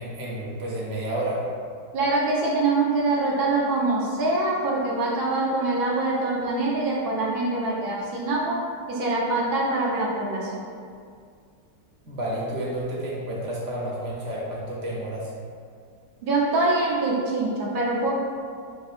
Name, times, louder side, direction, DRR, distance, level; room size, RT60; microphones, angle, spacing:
voice 1, 0.0-1.4 12.0-15.3, right 1 dB, 55° right, -5 dB, 0.9 m, -30 dB
voice 2, 1.9-8.6 8.9-10.6 16.2-18.1, right 2 dB, 75° right, -5 dB, 0.4 m, -24 dB
6.2 x 2.7 x 2.4 m, 2.2 s
omnidirectional pair, 2.0 m